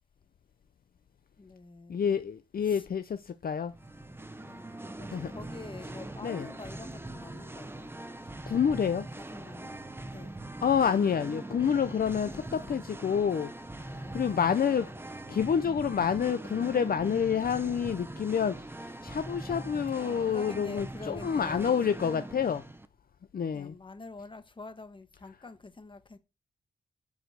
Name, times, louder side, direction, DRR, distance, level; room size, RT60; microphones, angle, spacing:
voice 1, 1.4-2.1 2.6-2.9 4.4-7.9 9.2-10.4 12.2-12.7 13.9-14.8 20.0-22.2 23.5-26.2, left 3 dB, 25° left, 1.3 m, -47 dB
voice 2, 1.9-3.7 5.1-5.3 6.2-6.4 8.5-9.1 10.6-13.5 14.1-14.9 15.3-22.6 23.3-23.7, left 7 dB, 50° left, 0.7 m, -28 dB
Singing, 3.7-22.9, right 2 dB, 10° right, 0.9 m, -42 dB
10.5 x 5.1 x 8.2 m
wide cardioid pair, 100°, 19 cm